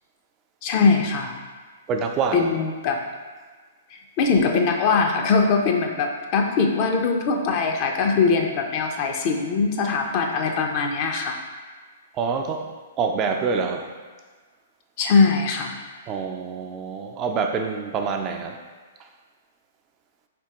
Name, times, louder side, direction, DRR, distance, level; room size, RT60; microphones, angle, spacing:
voice 1, 0.6-1.4 2.3-3.0 3.9-11.4 15.0-15.8, left 4 dB, 40° left, 2 dB, 0.5 m, -21 dB
voice 2, 1.9-2.5 12.1-12.7 13.0-13.8 16.1-18.6, right 5 dB, 30° right, 4 dB, 0.4 m, -26 dB
4.2 x 3.4 x 2.9 m, 1.4 s
hypercardioid pair, 120°, 0 cm